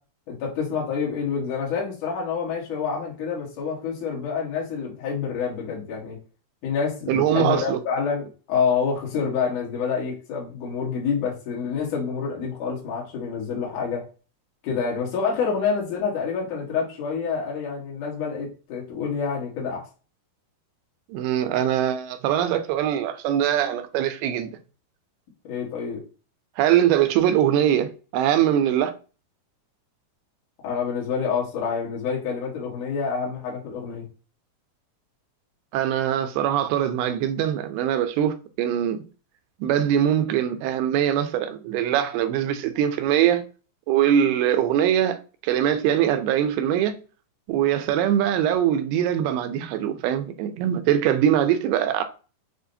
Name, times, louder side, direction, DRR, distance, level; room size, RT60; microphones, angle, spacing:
voice 1, 0.3-6.2 6.6-14.0 14.6-19.8 25.4-26.0 30.6-34.1, left 6 dB, 60° left, 2.6 m, -27 dB
voice 2, 7.1-7.8 21.1-24.5 26.6-28.9 35.7-39.0 39.6-43.4 43.9-47.0 47.5-52.0, right 10 dB, 85° right, 2.4 m, -22 dB
6.9 x 2.5 x 2.6 m
omnidirectional pair, 4.7 m